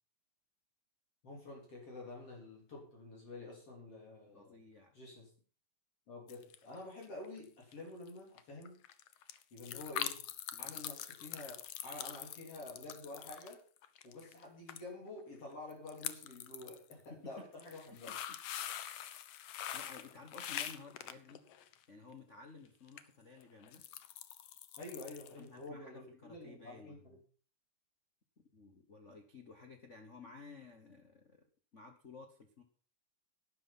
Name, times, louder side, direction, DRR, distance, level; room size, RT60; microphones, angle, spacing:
voice 1, 1.2-4.6 4.9-5.3 6.1-8.8 9.5-10.2 10.6-13.6 14.0-18.1 24.8-27.2, left 2 dB, 45° left, -1 dB, 4.6 m, -49 dB
voice 2, 4.3-4.9 10.5-10.8 17.4-17.5 18.1-18.2 19.7-21.4 21.9-23.8 25.4-27.2 28.5-31.4 31.7-32.6, left 4 dB, 90° left, 5 dB, 0.6 m, -54 dB
sound 1, 6.3-6.8 7.0-7.4 7.7-7.8 8.0-8.1 8.4-14.4 14.7-14.8 15.1-15.2 15.7-16.9 17.4-21.8 22.9-23.0 23.4-25.4 25.7-25.8, left 11 dB, 70° left, 1.5 m, -44 dB
11.5 x 10.0 x 5.6 m, 0.40 s
omnidirectional pair, 3.8 m